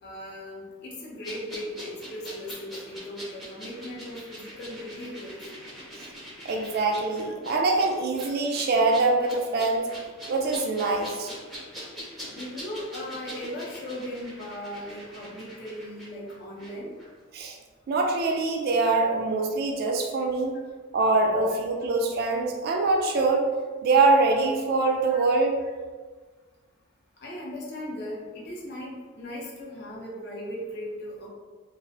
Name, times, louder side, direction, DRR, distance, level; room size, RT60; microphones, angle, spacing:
voice 1, 0.0-5.3 12.3-16.9 25.1-25.2 25.6-25.7 27.2-31.3, left 1 dB, 55° left, -4 dB, 0.6 m, -38 dB
sound 1, 1.2-16.7 17.0-17.1, equal, ahead, 0.5 m, -43 dB
voice 2, 6.4-9.9 10.3-11.3 17.3-17.6 17.9-20.6 20.9-23.5 23.8-25.5, right 3 dB, 50° right, 1 dB, 0.3 m, -24 dB
2.4 x 2.0 x 2.6 m, 1.4 s
head